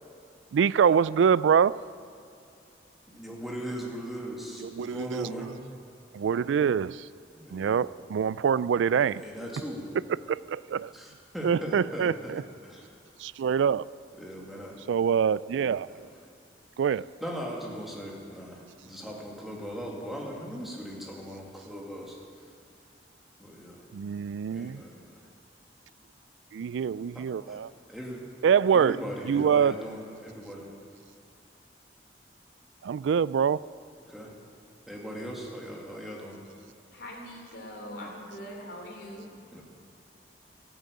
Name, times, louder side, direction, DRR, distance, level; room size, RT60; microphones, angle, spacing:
voice 1, 0.5-1.8 4.6-5.5 6.1-7.1 7.5-9.2 10.1-10.9 11.4-12.4 13.2-13.8 14.9-16.1 16.8-17.1 23.9-24.8 26.5-27.7 28.4-29.0 29.3-29.8 32.8-33.6, right 7 dB, 85° right, 19 dB, 0.3 m, -25 dB
voice 2, 3.1-5.5 7.3-7.8 9.0-9.9 10.9-12.9 14.2-14.8 15.9-16.0 17.2-22.2 23.4-23.9 24.5-25.3 27.1-27.6 27.9-28.2 28.7-30.7 34.1-34.3 34.9-36.4 39.5-39.6, equal, ahead, -3 dB, 2.3 m, -39 dB
voice 3, 36.9-39.3, equal, 65° left, 0 dB, 3.4 m, -42 dB
13.5 x 10.5 x 8.4 m, 2.6 s
head